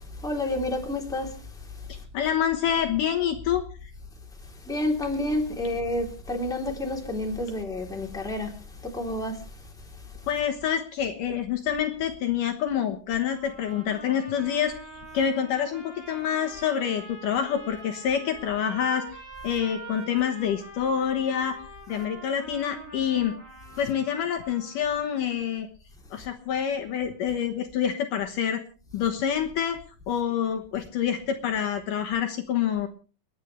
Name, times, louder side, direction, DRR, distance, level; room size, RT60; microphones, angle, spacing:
voice 1, 0.0-2.0 4.4-10.3 23.7-23.9 26.2-26.3, left 1 dB, ahead, 2.8 m, -31 dB
voice 2, 2.1-3.6 10.3-14.7 15.1-19.0 19.4-21.6 21.9-23.4 23.8-25.7 26.1-28.6 28.9-32.9, left 9 dB, 70° left, 2.7 m, -27 dB
sound 1, 13.3-25.0, right 2 dB, 20° right, 5.7 m, -44 dB
30.0 x 10.0 x 3.3 m
omnidirectional pair, 4.3 m